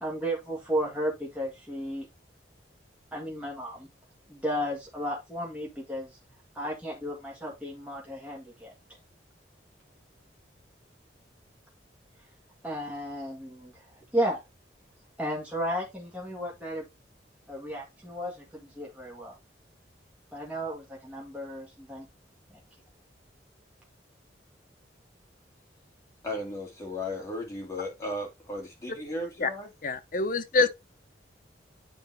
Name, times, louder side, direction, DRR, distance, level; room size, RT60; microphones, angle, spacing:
voice 1, 0.0-2.1 3.1-3.9 4.3-6.1 6.6-8.7 12.6-13.7 14.1-14.4 15.2-16.8 17.5-19.3 20.3-22.1, equal, 10° right, 1.9 m, -33 dB
voice 2, 26.2-29.7, left 1 dB, 15° left, 2.3 m, -35 dB
voice 3, 29.8-30.7, left 3 dB, 50° left, 0.8 m, -25 dB
8.9 x 4.5 x 3.4 m
head